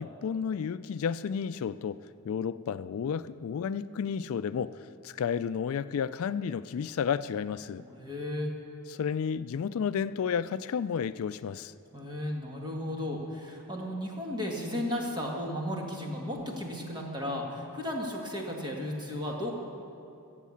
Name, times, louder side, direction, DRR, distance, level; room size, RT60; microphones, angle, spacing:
voice 1, 0.0-4.7 5.0-7.8 8.9-11.7, left 7 dB, 70° left, 14 dB, 0.3 m, -32 dB
voice 2, 7.8-8.5 11.9-19.5, left 1 dB, 20° right, -1 dB, 1.8 m, -34 dB
14.0 x 7.4 x 8.5 m, 2.7 s
head